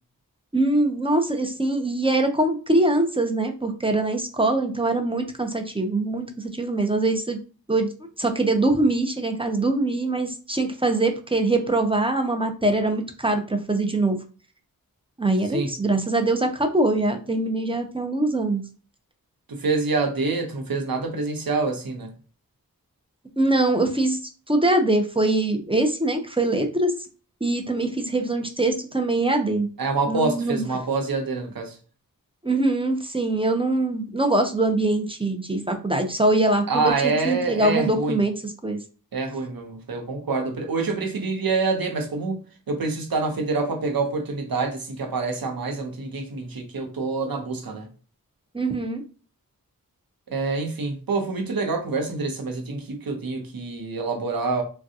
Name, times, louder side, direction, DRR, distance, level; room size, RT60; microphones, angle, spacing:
voice 1, 0.5-7.4 7.7-7.9 8.2-14.2 15.2-18.6 23.4-24.2 24.5-26.9 27.4-29.7 30.1-30.6 32.4-38.8 48.5-49.0, right 2 dB, 15° right, 0.6 m, -23 dB
voice 2, 19.5-22.1 29.8-31.7 36.7-38.2 39.1-42.4 42.7-47.9 50.3-54.6, right 3 dB, 75° right, 0.9 m, -26 dB
3.5 x 2.3 x 2.7 m
cardioid pair, 50°, 35 cm